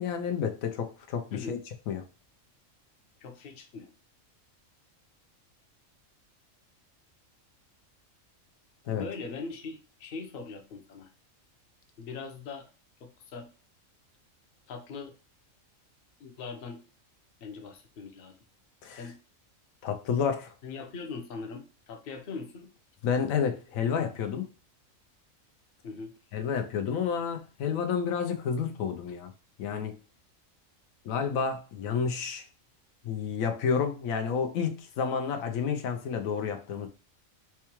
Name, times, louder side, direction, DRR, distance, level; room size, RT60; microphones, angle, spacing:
voice 1, 0.0-1.6 1.9-2.0 8.9-9.0 18.8-19.0 19.8-20.5 23.0-24.5 26.3-29.3 29.6-30.0 31.0-32.4 33.0-36.9, left 6 dB, 90° left, 1.1 m, -30 dB
voice 2, 3.2-3.9 8.9-11.1 12.0-12.7 13.0-13.5 14.7-15.1 16.2-16.8 17.4-18.3 18.9-19.2 20.6-22.7 25.8-26.2, left 4 dB, 50° left, 0.8 m, -41 dB
4.6 x 2.2 x 2.9 m
omnidirectional pair, 1.4 m